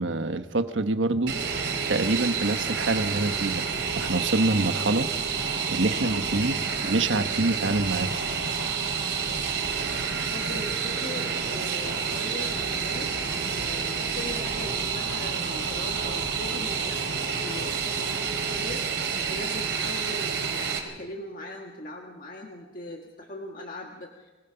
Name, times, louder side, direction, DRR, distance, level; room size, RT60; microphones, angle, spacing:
voice 1, 0.0-1.3 1.9-5.1 5.7-8.2, right 2 dB, 85° right, 9 dB, 1.3 m, -26 dB
Fixed-wing aircraft airplane, 1.3-20.8, right 6 dB, 65° right, 3.7 m, -29 dB
voice 2, 4.4-4.9 10.2-18.9 19.3-24.3, left 1 dB, 45° left, 1 dB, 1.8 m, -40 dB
24.5 x 19.5 x 5.8 m, 1.2 s
head